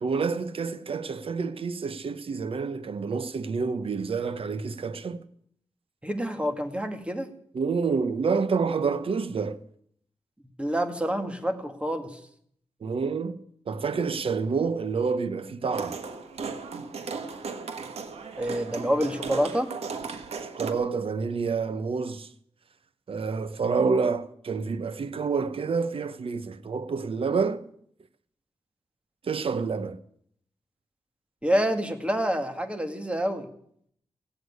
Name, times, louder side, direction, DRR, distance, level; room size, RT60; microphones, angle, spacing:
voice 1, 0.0-5.2 7.5-9.6 12.8-13.4 13.7-16.0 20.4-22.3 23.1-27.6 29.2-30.0, right 5 dB, 60° right, 0.9 m, -28 dB
voice 2, 6.0-7.3 10.6-12.2 18.4-19.7 31.4-33.5, equal, 10° right, 1.9 m, -27 dB
sound 1, 15.7-20.7, right 5 dB, 85° right, 1.5 m, -36 dB
16.0 x 8.1 x 9.5 m
wide cardioid pair, 85°, 10 cm